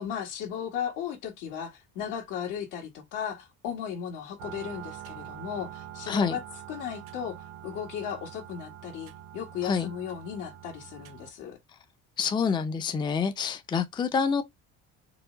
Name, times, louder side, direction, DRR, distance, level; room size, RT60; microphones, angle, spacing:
voice 1, 0.0-6.4 6.7-7.4 7.6-11.6, left 8 dB, 85° left, 1.8 m, -36 dB
sound 1, 4.4-11.3, right 12 dB, 85° right, 0.8 m, -45 dB
voice 2, 6.1-6.4 9.6-9.9 12.2-14.4, left 6 dB, 15° left, 0.4 m, -27 dB
4.7 x 2.2 x 3.8 m
cardioid pair, 145°, 31 cm